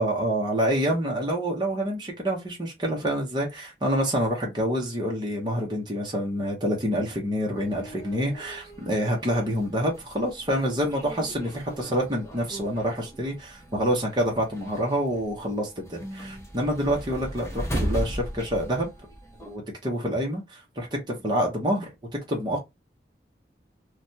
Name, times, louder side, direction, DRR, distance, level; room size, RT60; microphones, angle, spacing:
voice 1, 0.0-18.9 19.4-21.9 22.3-22.6, equal, 25° right, 0.8 m, -27 dB
sound 1, 7.6-19.6, equal, 15° left, 0.8 m, -37 dB
3.2 x 2.2 x 2.7 m
head